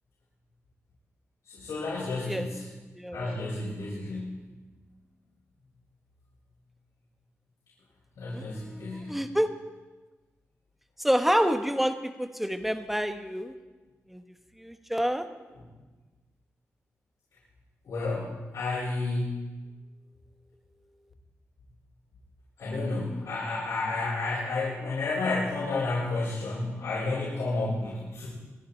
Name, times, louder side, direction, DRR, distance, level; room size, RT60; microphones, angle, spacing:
voice 1, 1.4-2.7 3.1-4.4 8.2-9.2 17.8-19.4 22.6-28.3, left 3 dB, 90° left, -9 dB, 6.3 m, -31 dB
voice 2, 2.9-3.4 8.3-9.5 11.0-13.5 14.1-14.2 14.6-15.3, equal, 5° right, 7 dB, 1.2 m, -28 dB
25.5 x 11.5 x 4.5 m, 1.2 s
cardioid pair, 90°, 5 cm